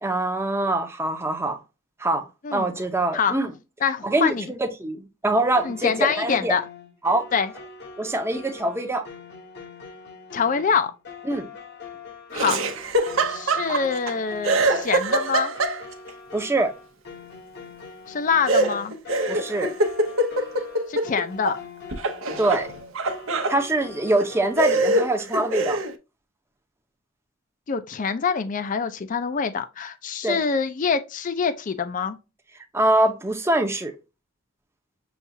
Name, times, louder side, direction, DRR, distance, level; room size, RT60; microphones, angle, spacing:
voice 1, 0.0-1.6 2.0-2.2 2.5-3.5 4.0-6.5 7.0-7.3 8.0-9.1 11.3-11.5 16.3-16.7 19.3-19.7 22.4-22.7 23.5-25.8 30.2-30.4 32.7-33.9, right 2 dB, 15° right, 0.7 m, -24 dB
voice 2, 3.8-4.5 5.6-6.6 7.3-7.5 10.3-10.9 12.3-12.6 13.3-15.5 18.1-18.9 20.9-21.6 27.7-32.2, left 6 dB, 40° left, 0.4 m, -25 dB
sound 1, 5.3-24.6, left 5 dB, 55° left, 0.9 m, -42 dB
Laughter, 12.3-14.1 14.4-16.1 18.5-21.6 21.9-23.6 24.2-24.3 24.6-25.9, right 2 dB, 85° right, 0.8 m, -24 dB
6.9 x 2.4 x 2.7 m
head